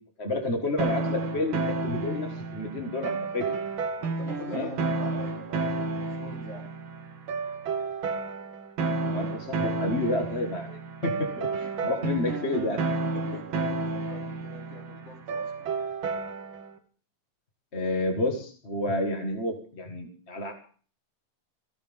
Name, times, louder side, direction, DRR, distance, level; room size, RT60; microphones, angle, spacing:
voice 1, 0.2-3.5 4.5-4.7 9.0-12.8 17.7-20.5, left 2 dB, 30° left, 3 dB, 1.5 m, -30 dB
sound 1, 0.8-16.7, right 3 dB, 50° right, 1.8 m, -31 dB
voice 2, 4.0-6.7 11.9-12.1 13.1-15.7, left 2 dB, 55° left, -1 dB, 4.4 m, -46 dB
17.5 x 16.0 x 3.6 m, 0.42 s
omnidirectional pair, 3.3 m